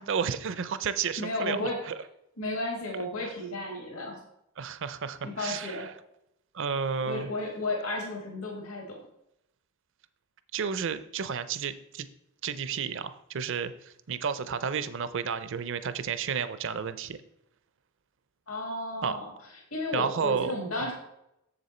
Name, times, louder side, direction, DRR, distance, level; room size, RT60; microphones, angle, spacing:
voice 1, 0.0-1.6 4.6-5.8 6.5-7.3 10.5-12.1 12.4-17.2 19.0-19.2 19.9-20.6, right 6 dB, 60° right, 13 dB, 0.5 m, -31 dB
voice 2, 1.2-1.8 2.4-4.2 5.2-5.9 7.0-9.0 18.5-19.3 19.7-20.9, left 2 dB, 75° left, 0 dB, 1.7 m, -33 dB
7.1 x 6.8 x 4.3 m, 0.80 s
head